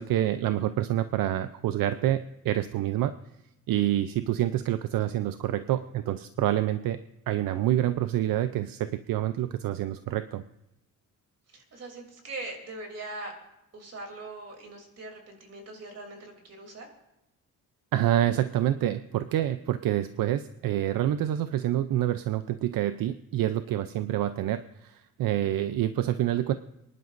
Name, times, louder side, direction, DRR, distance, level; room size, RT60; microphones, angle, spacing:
voice 1, 0.0-3.1 3.7-7.0 7.3-10.4 17.9-26.5, right 12 dB, 75° right, 11 dB, 0.6 m, -27 dB
voice 2, 11.5-13.3 13.7-16.9, right 2 dB, 45° right, 2 dB, 3.1 m, -41 dB
29.0 x 11.0 x 2.6 m, 0.89 s
cardioid pair, 150°, 34 cm